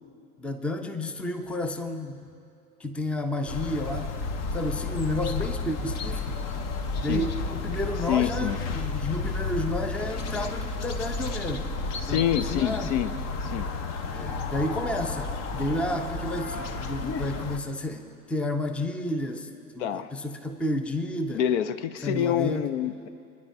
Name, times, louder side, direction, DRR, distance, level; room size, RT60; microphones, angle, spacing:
voice 1, 0.4-2.3 2.8-4.1 4.5-6.4 7.0-11.8 12.0-12.9 14.1-21.4 22.0-22.7, left 1 dB, 5° left, 7 dB, 0.6 m, -31 dB
sound 1, 3.5-17.6, left 4 dB, 40° left, 1.0 m, -32 dB
voice 2, 8.1-8.6 12.0-13.1 13.4-13.7 19.8-20.1 21.3-23.1, left 10 dB, 55° left, 13 dB, 0.6 m, -27 dB
29.5 x 10.5 x 2.7 m, 2.6 s
hypercardioid pair, 90°, 44 cm